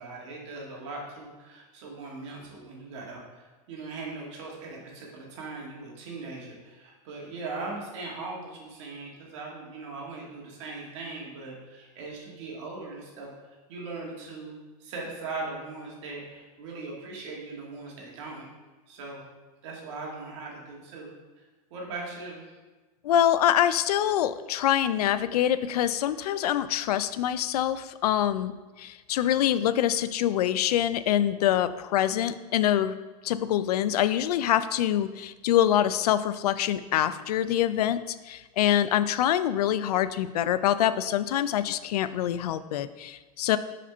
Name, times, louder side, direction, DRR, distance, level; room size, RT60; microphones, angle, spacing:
voice 1, 0.0-18.5 18.9-19.2 19.6-21.1 21.4-21.5 21.7-22.6, right 3 dB, 50° right, -3 dB, 1.7 m, -39 dB
voice 2, 23.0-28.5 28.8-32.9 33.2-43.6, left 11 dB, 85° left, 14 dB, 0.4 m, -25 dB
5.0 x 4.4 x 5.4 m, 1.2 s
supercardioid pair, 165°, 19 cm